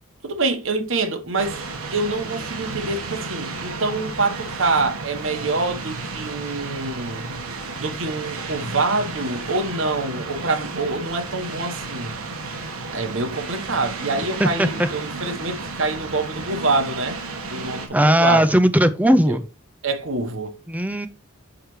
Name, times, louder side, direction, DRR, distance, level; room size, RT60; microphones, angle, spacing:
voice 1, 0.2-1.6 1.9-7.2 7.8-12.1 12.9-17.2 17.5-18.5 19.3-19.4 19.8-20.5, right 3 dB, 65° right, 1.2 m, -25 dB
sound 1, 1.4-17.9, right 3 dB, 85° right, 1.4 m, -32 dB
voice 2, 14.4-14.9 17.9-19.4 20.7-21.1, equal, 5° right, 0.4 m, -18 dB
6.5 x 5.9 x 3.2 m
head